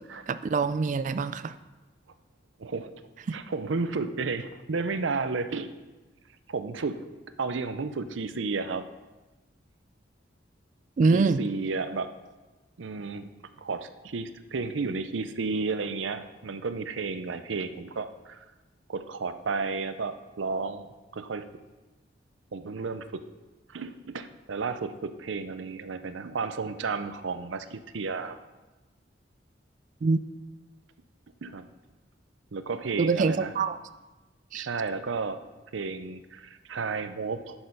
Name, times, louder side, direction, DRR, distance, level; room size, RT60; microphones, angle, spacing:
voice 1, 0.3-1.6 3.3-3.4 11.0-11.4 30.0-30.2 33.0-33.8 34.5-34.7, right 4 dB, 40° right, 14 dB, 0.3 m, -25 dB
voice 2, 2.6-2.9 3.3-5.7 6.5-7.0 7.4-8.9 11.1-12.1 12.8-13.3 13.6-18.4 18.9-20.9 21.1-21.4 22.5-23.3 23.7-28.4 31.4-31.7 32.5-33.5 34.5-35.4 35.7-37.6, right 4 dB, 90° right, 11 dB, 0.6 m, -32 dB
8.9 x 6.5 x 5.4 m, 1.2 s
head